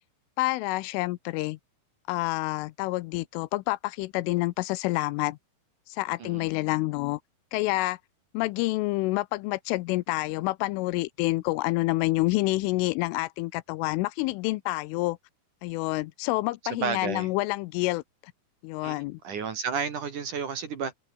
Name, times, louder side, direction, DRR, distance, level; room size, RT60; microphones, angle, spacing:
voice 1, 0.4-1.6 2.1-5.4 5.9-7.2 7.5-8.0 8.3-15.2 15.6-18.3 18.6-19.2, left 20 dB, 85° left, 3.2 m, -28 dB
voice 2, 16.6-17.3 18.8-19.0 19.2-20.9, right 6 dB, 50° right, 3.2 m, -32 dB
omnidirectional pair, 5.7 m